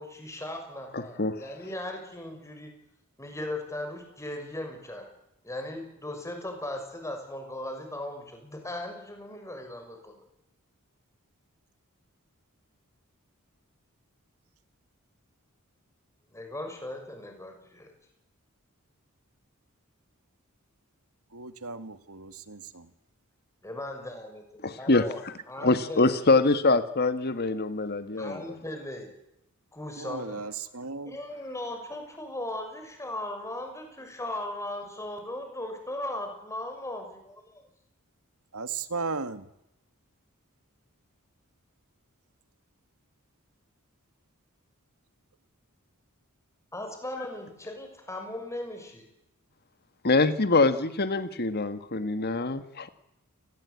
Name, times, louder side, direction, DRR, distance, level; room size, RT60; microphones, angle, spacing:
voice 1, 0.0-2.7 3.2-5.0 5.4-10.1 16.3-17.9 23.6-24.4 24.8-25.2 25.5-26.2 28.2-29.1 29.7-30.4 31.1-37.6 46.7-49.0, left 1 dB, 15° left, 6.5 m, -38 dB
voice 2, 0.9-1.4 24.6-25.3 25.6-28.5 50.0-52.9, left 3 dB, 45° left, 1.6 m, -24 dB
voice 3, 21.3-22.8 30.0-31.2 38.5-39.4, right 4 dB, 80° right, 2.2 m, -36 dB
29.5 x 21.0 x 8.5 m
head